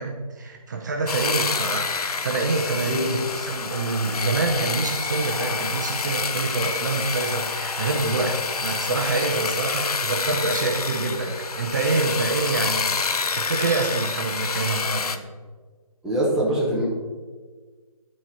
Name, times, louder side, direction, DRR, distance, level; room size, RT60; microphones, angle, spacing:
voice 1, 0.0-15.2, right 3 dB, 30° right, 2 dB, 0.7 m, -26 dB
sound 1, 1.1-15.2, left 5 dB, 90° left, 0.7 m, -28 dB
voice 2, 2.9-3.2 16.0-16.9, right 1 dB, ahead, -7 dB, 0.9 m, -23 dB
12.0 x 4.5 x 4.1 m, 1.4 s
hypercardioid pair, 165°, 19 cm